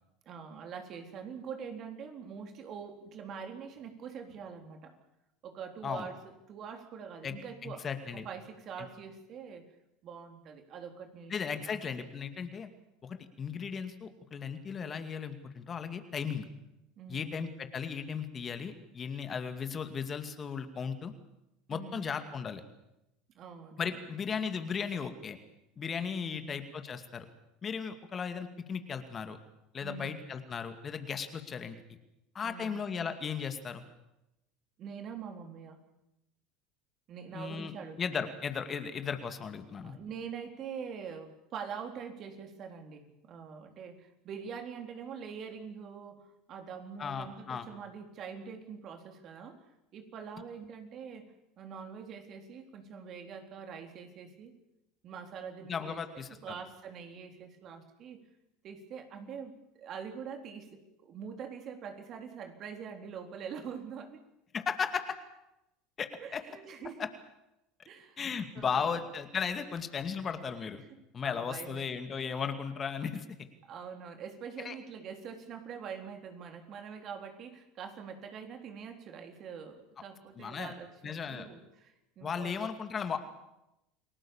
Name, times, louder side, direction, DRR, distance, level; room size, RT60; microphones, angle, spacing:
voice 1, 0.3-5.0 5.4-7.9 8.1-9.7 10.0-11.9 17.0-17.4 21.7-22.0 23.3-24.1 26.2-26.6 29.8-30.2 32.4-32.8 34.8-35.8 37.1-38.3 39.8-49.7 49.9-54.6 55.0-58.2 58.6-64.2 66.2-67.1 67.9-68.3 68.5-69.0 71.2-72.3 73.6-82.7, right 6 dB, 50° right, 5 dB, 3.9 m, -44 dB
voice 2, 7.6-8.3 8.8-8.9 11.3-12.7 13.0-16.5 17.1-21.1 21.7-22.6 23.8-25.4 25.8-27.3 27.6-29.4 29.7-31.8 32.3-33.8 37.3-37.7 38.0-40.0 47.0-47.7 55.6-56.6 64.5-65.2 66.0-66.4 67.0-67.1 68.2-70.8 71.1-73.3 74.6-74.7 80.4-80.7 81.0-81.5 82.2-83.2, left 6 dB, 35° left, 9 dB, 2.3 m, -36 dB
29.0 x 19.0 x 7.3 m, 0.89 s
hypercardioid pair, 90°, 0 cm